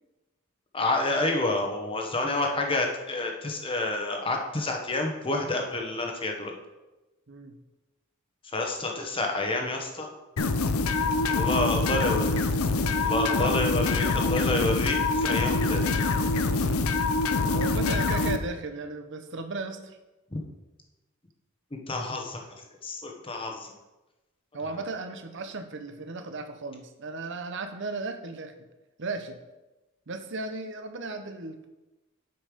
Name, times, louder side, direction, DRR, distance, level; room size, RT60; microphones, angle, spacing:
voice 1, 0.7-6.5 8.5-10.1 11.3-12.4 13.0-15.8 20.3-20.4 21.9-22.4 22.8-23.7, left 2 dB, 25° left, 2 dB, 1.0 m, -29 dB
sound 1, 10.4-18.4, left 3 dB, 80° left, 0.6 m, -25 dB
voice 2, 13.2-13.7 14.0-14.2 15.3-15.4 17.5-20.0 24.5-28.5 29.0-29.4 30.1-31.7, right 3 dB, 55° right, 7 dB, 0.8 m, -36 dB
8.0 x 5.4 x 5.1 m, 1.1 s
head